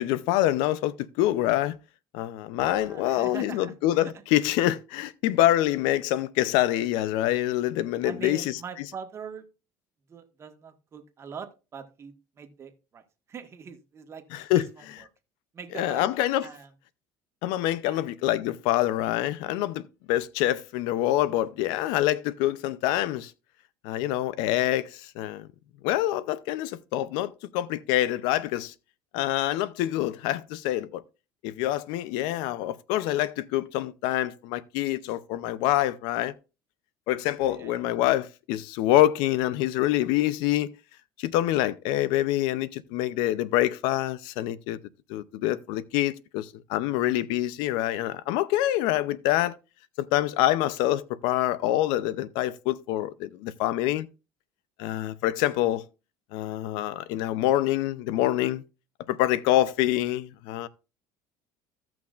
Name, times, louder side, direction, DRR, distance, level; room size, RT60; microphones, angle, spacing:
voice 1, 0.0-1.8 2.1-8.6 14.3-14.7 15.7-16.5 17.4-23.3 23.8-25.5 25.8-28.7 29.1-31.0 31.4-36.3 37.1-40.7 41.2-44.8 45.1-49.5 50.0-54.1 54.8-55.8 56.3-58.6 59.1-60.7, left 14 dB, 80° left, 0.6 m, -26 dB
voice 2, 2.7-4.1 8.0-9.4 10.1-14.2 14.5-15.1 15.5-16.0 16.4-16.7 17.9-18.0 37.4-37.8, right 7 dB, 35° right, 1.6 m, -43 dB
16.0 x 6.0 x 2.5 m
supercardioid pair, 110°, 8 cm